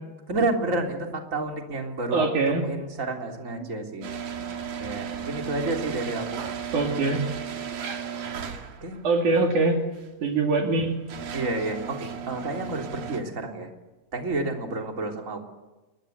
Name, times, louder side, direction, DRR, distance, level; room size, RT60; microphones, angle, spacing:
voice 1, 0.3-4.1 4.5-6.5 8.6-9.0 9.3-9.5 11.3-13.7 14.1-15.4, right 2 dB, 25° right, 3 dB, 3.6 m, -30 dB
voice 2, 2.1-2.6 6.7-7.2 9.0-9.8 10.2-11.0, right 3 dB, 65° right, 2 dB, 4.0 m, -23 dB
sound 1, 4.0-9.0 9.9-10.1 10.7-13.2, right 7 dB, 90° right, 4.1 m, -35 dB
29.0 x 22.5 x 8.1 m, 1.1 s
omnidirectional pair, 3.9 m